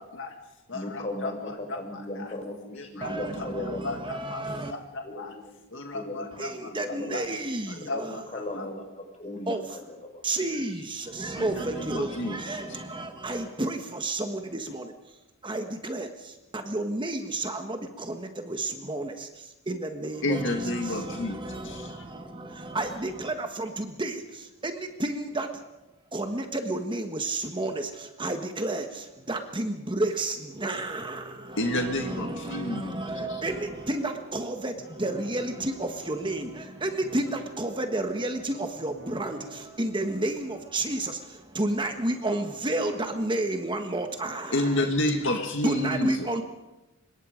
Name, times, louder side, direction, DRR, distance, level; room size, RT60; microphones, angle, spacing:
voice 1, 0.0-0.3 0.7-2.3 2.7-3.5 3.8-5.3 5.7-7.2 7.7-8.7 11.4-12.4 12.7-12.8 20.2-22.1 31.5-33.4 44.5-46.3, left 1 dB, 60° left, 1.9 m, -32 dB
voice 2, 0.7-4.3 5.0-7.3 7.8-10.2 10.5-10.9, left 1 dB, 30° left, 5.1 m, -38 dB
voice 3, 3.0-4.7 6.4-8.1 9.5-9.6 10.2-15.2 15.4-25.5 26.1-44.6 45.6-46.4, right 2 dB, 20° right, 1.5 m, -31 dB
sound 1, 30.8-39.6, right 2 dB, 60° right, 6.7 m, -49 dB
25.5 x 22.0 x 5.2 m
head